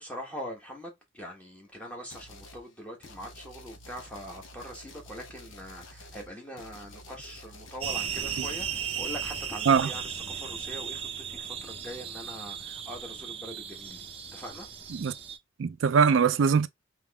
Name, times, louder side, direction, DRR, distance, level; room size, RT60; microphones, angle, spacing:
voice 1, 0.0-14.1 14.3-14.7, equal, 5° left, 1.3 m, -42 dB
sound 1, 2.1-2.6 3.0-9.5, left 1 dB, 85° left, 0.9 m, -49 dB
sound 2, 7.8-15.4, right 7 dB, 30° right, 0.5 m, -36 dB
voice 2, 15.6-16.7, right 6 dB, 90° right, 0.4 m, -22 dB
3.5 x 3.1 x 3.4 m
head